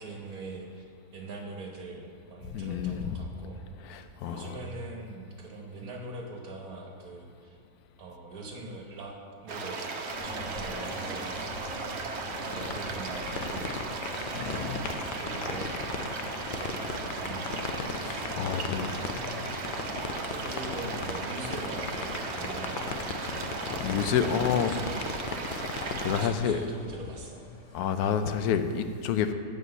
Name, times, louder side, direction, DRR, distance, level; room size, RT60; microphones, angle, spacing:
voice 1, 0.0-3.6 4.2-7.6 8.0-13.7 14.5-14.7 15.2-16.2 16.5-19.9 20.3-23.4 24.3-25.1 26.0-27.4, right 3 dB, 80° right, 1 dB, 1.7 m, -43 dB
voice 2, 2.5-3.2 3.8-4.5 14.3-14.8 18.0-19.0 23.7-24.7 25.5-25.7 26.0-26.6 27.7-29.3, left 8 dB, 90° left, 9 dB, 1.1 m, -29 dB
sound 1, 9.5-26.3, right 4 dB, 55° right, 0.9 m, -36 dB
sound 2, 10.1-28.3, left 1 dB, 25° left, 1.0 m, -44 dB
sound 3, 12.5-26.1, left 6 dB, 70° left, 0.4 m, -36 dB
7.8 x 5.1 x 6.6 m, 2.4 s
omnidirectional pair, 1.6 m